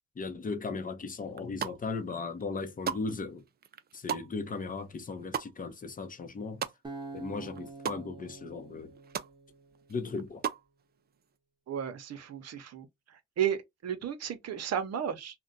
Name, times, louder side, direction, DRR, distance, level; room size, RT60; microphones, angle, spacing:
voice 1, 0.2-3.4 3.9-6.6 7.1-8.9 9.9-10.4, left 4 dB, 30° left, 0.7 m, -37 dB
sound 1, 1.3-2.0 2.4-7.2 7.4-8.0 8.4-8.5 8.7-9.3 9.7-10.7, right 8 dB, 35° right, 0.4 m, -37 dB
Acoustic guitar, 6.8-10.1, right 3 dB, 15° right, 0.9 m, -46 dB
voice 2, 11.7-15.4, right 9 dB, 60° right, 0.7 m, -34 dB
2.5 x 2.2 x 3.8 m
cardioid pair, 90°, 30 cm